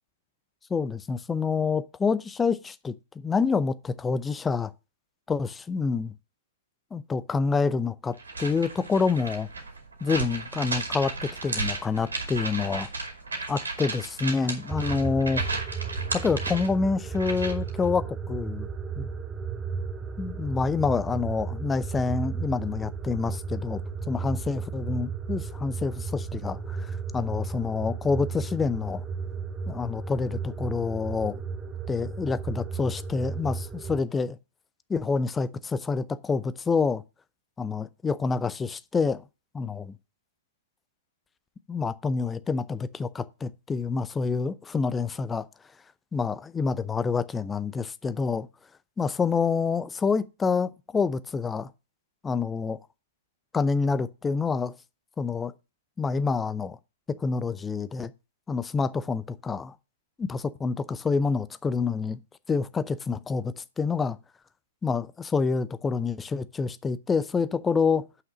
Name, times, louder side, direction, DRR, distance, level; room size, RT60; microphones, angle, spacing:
voice 1, 0.7-4.7 5.3-6.1 6.9-9.5 10.0-12.9 13.5-15.4 16.1-18.7 19.0-19.1 20.2-23.8 24.1-29.0 29.7-31.4 31.9-34.4 34.9-37.0 37.6-39.2 39.5-39.9 41.7-45.5 46.1-48.5 49.0-51.7 52.2-52.8 53.5-54.7 55.2-55.5 56.0-56.8 57.1-58.1 58.5-59.7 60.2-62.2 62.5-64.2 64.8-68.0, left 4 dB, 15° left, 0.6 m, -27 dB
sound 1, 8.2-17.7, right 3 dB, 80° right, 2.4 m, -34 dB
sound 2, 14.7-34.0, right 5 dB, 15° right, 1.7 m, -34 dB
8.0 x 5.9 x 6.2 m
figure-of-eight pair, 110°, 0 cm